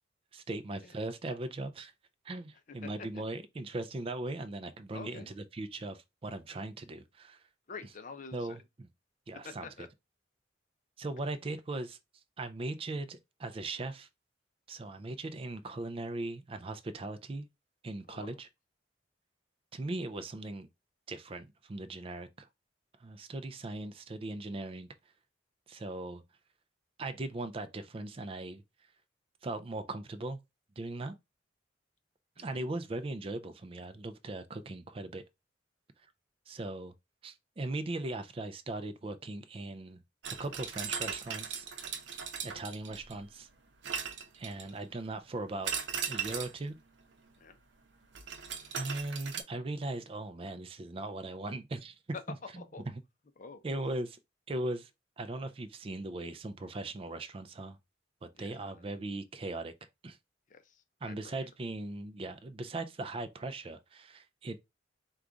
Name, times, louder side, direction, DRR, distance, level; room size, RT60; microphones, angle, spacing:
voice 1, 0.3-1.9 2.2-7.4 8.3-8.6 9.3-9.7 11.0-12.0 12.4-14.1 14.7-17.5 17.8-18.5 19.7-20.7 21.1-22.5 23.0-24.9 25.7-26.2 27.0-28.6 29.4-30.4 30.8-31.2 32.4-35.2 36.5-36.9 37.2-40.0 40.4-41.7 42.4-43.5 44.4-45.7 46.1-46.8 48.7-52.0 53.6-54.2 54.5-54.9 55.2-57.8 58.2-59.7 60.0-60.2 61.0-64.6, right 2 dB, 30° right, 0.4 m, -39 dB
voice 2, 2.7-3.2 4.9-5.3 7.7-8.6 9.4-9.9 18.1-18.4 32.4-32.7 47.4-47.6 52.1-52.8 53.4-53.6 58.3-59.0 60.5-61.5, left 4 dB, 45° left, 0.6 m, -47 dB
sound 1, 40.2-43.2 43.8-44.8 45.6-46.6 48.1-49.4, right 7 dB, 70° right, 0.7 m, -38 dB
4.8 x 2.3 x 3.8 m
head